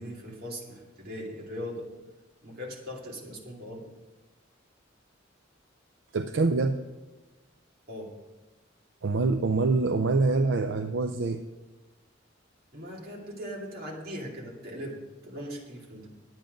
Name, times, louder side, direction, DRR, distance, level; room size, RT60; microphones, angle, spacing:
voice 1, 0.0-1.9 2.4-3.9 7.9-8.1 12.7-16.1, equal, 50° right, -2 dB, 2.5 m, -39 dB
voice 2, 6.1-6.8 9.0-11.4, right 3 dB, 75° right, 7 dB, 0.5 m, -25 dB
11.0 x 9.0 x 5.1 m, 1.1 s
head